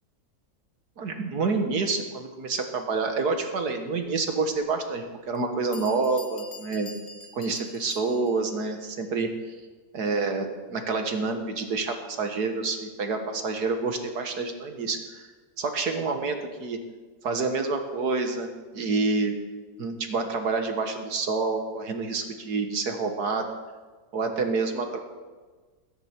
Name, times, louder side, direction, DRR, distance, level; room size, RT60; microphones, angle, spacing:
voice 1, 1.0-6.9 7.3-9.6 9.9-15.3 15.6-16.8 17.2-18.5 18.7-19.3 19.8-23.5 24.1-25.0, right 4 dB, 55° right, 5 dB, 1.8 m, -28 dB
Bell, 4.5-4.6 5.3-5.4 5.7-8.5, left 3 dB, 40° left, 1.1 m, -45 dB
21.0 x 10.5 x 4.4 m, 1.3 s
omnidirectional pair, 2.1 m